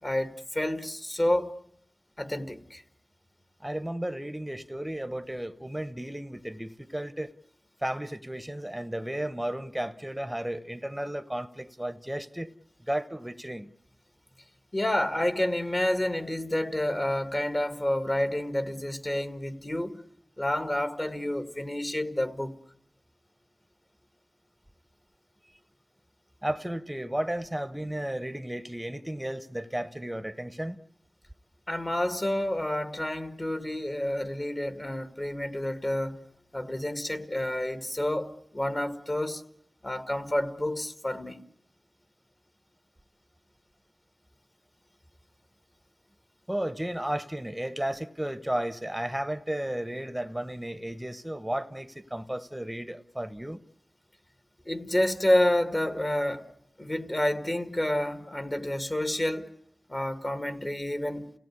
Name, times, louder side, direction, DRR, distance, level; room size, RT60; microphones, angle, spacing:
voice 1, 0.0-1.5 2.2-2.8 14.7-20.0 20.4-22.6 31.7-36.2 36.5-39.4 39.8-41.4 54.7-56.5 56.8-59.5 59.9-61.3, left 1 dB, 30° left, 1.9 m, -29 dB
voice 2, 3.6-7.3 7.8-12.5 12.9-13.7 26.4-30.8 46.5-53.6, right 1 dB, 10° right, 1.0 m, -33 dB
29.5 x 17.0 x 9.8 m
wide cardioid pair, 50°, 0 cm